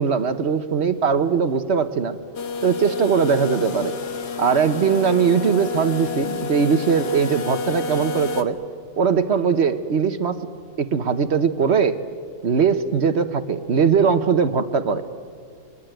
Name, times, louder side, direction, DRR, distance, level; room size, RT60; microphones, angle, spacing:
voice 1, 0.0-2.2 2.6-4.0 4.4-8.6 9.0-10.4 10.8-12.0 12.4-15.0, right 6 dB, 50° right, 11 dB, 1.1 m, -20 dB
sound 1, 2.3-8.4, left 6 dB, 85° left, 2.0 m, -30 dB
25.5 x 21.0 x 9.0 m, 2.2 s
omnidirectional pair, 1.7 m